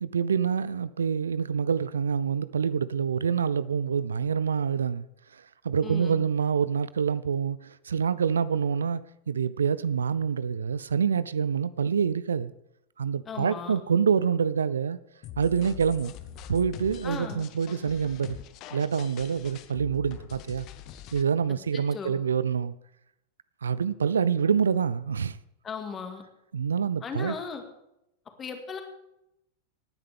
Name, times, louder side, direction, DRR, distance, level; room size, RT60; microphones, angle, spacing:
voice 1, 0.0-5.1 5.3-12.5 13.0-15.0 15.4-16.1 16.5-18.4 18.7-20.7 21.1-22.7 23.6-25.4 26.5-27.3, right 7 dB, 70° right, 0.4 m, -26 dB
voice 2, 5.8-6.2 13.3-13.8 17.0-17.4 21.5-22.2 25.6-26.2 27.0-27.6 28.4-28.8, left 6 dB, 20° left, 2.1 m, -37 dB
sound 1, 15.2-21.2, left 10 dB, 40° left, 0.9 m, -43 dB
18.5 x 10.0 x 3.6 m
figure-of-eight pair, 90°, 0 cm